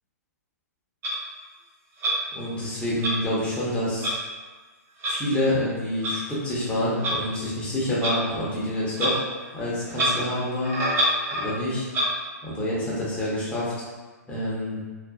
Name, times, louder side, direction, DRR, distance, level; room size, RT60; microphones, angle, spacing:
Clock, 1.0-1.1 2.0-2.2 3.0-3.1 4.0-4.2 5.0-5.1 6.0-6.1 7.0-7.2 8.0-8.2 8.9-9.1 9.4-9.5 9.9-10.1 10.6-11.5 11.9-12.1, equal, 25° right, 0.7 m, -25 dB
voice 1, 2.3-4.1 5.1-9.2 9.5-10.8 11.4-11.9 12.4-13.7 14.3-14.8, left 1 dB, 10° left, -8 dB, 0.9 m, -27 dB
2.6 x 2.5 x 2.3 m, 1.3 s
hypercardioid pair, 115°, 9 cm